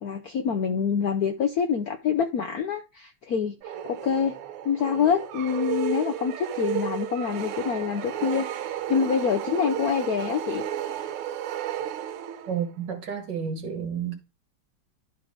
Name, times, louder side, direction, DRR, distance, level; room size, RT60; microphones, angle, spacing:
voice 1, 0.0-4.3 4.6-10.7, left 7 dB, 65° left, 0.9 m, -26 dB
sound 1, 3.6-12.7, right 10 dB, 80° right, 1.7 m, -33 dB
voice 2, 12.5-14.2, right 7 dB, 55° right, 1.9 m, -31 dB
11.0 x 3.8 x 4.9 m
omnidirectional pair, 2.4 m